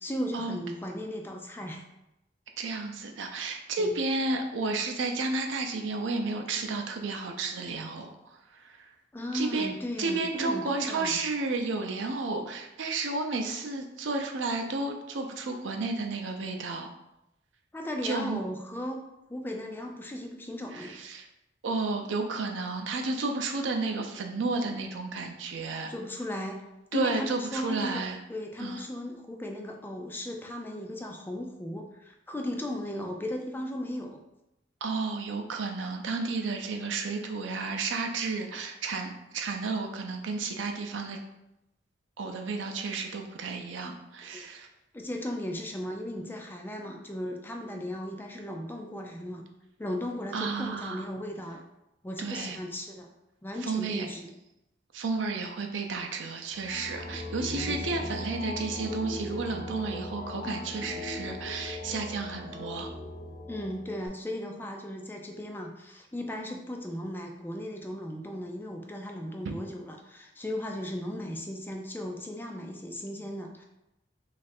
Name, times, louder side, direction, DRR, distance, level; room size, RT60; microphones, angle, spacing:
voice 1, 0.0-1.8 3.8-4.0 9.1-11.2 17.7-21.0 25.9-26.7 26.9-28.0 28.3-34.2 44.3-44.4 44.9-49.4 49.8-51.6 52.0-53.1 53.4-54.3 57.6-57.9 63.5-73.6, left 1 dB, 10° left, 2 dB, 0.3 m, -36 dB
voice 2, 2.6-8.9 9.3-16.9 18.0-18.4 20.7-21.2 21.6-25.9 26.9-28.2 28.6-28.8 34.8-41.2 42.2-44.7 50.3-51.0 52.2-52.6 53.6-54.1 54.9-62.9 69.4-69.5, right 3 dB, 85° right, 4 dB, 0.5 m, -32 dB
sound 1, 56.5-64.1, left 2 dB, 40° left, 1.0 m, -39 dB
3.1 x 2.4 x 4.2 m, 0.89 s
head